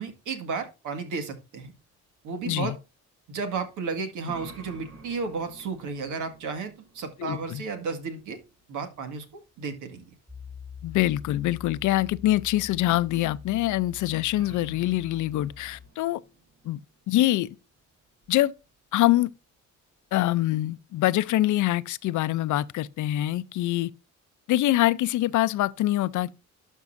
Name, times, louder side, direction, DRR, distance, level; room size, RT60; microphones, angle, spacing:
voice 1, 0.0-1.7 2.2-2.7 3.3-8.4 8.7-9.3 9.6-10.0, right 4 dB, 85° right, 2.0 m, -33 dB
voice 2, 2.4-2.7 7.2-7.6 10.8-16.2 16.6-16.8 17.1-17.5 18.3-18.5 18.9-19.3 20.1-23.9 24.5-26.3, left 15 dB, 75° left, 0.6 m, -24 dB
sound 1, 3.8-10.5 13.8-13.9 14.3-18.7, right 3 dB, 50° right, 1.6 m, -51 dB
Piano, 10.3-15.9, left 7 dB, 5° right, 1.0 m, -44 dB
12.0 x 5.4 x 2.6 m
cardioid pair, 90°, 30 cm